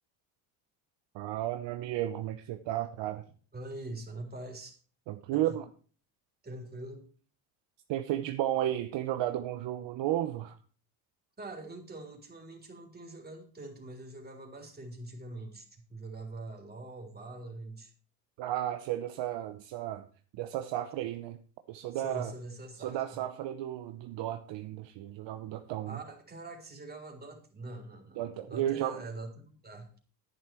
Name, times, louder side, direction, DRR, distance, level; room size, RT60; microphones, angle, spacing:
voice 1, 1.1-3.2 5.1-5.6 7.9-10.6 18.4-20.1 20.3-21.4 21.7-22.3 22.8-26.0 28.2-29.0, right 13 dB, 60° right, 0.9 m, -33 dB
voice 2, 3.5-4.8 5.3-5.6 6.4-7.1 11.4-17.9 21.9-23.2 25.9-29.9, right 2 dB, 20° right, 3.6 m, -44 dB
10.5 x 10.0 x 4.6 m
supercardioid pair, 80°, 50 cm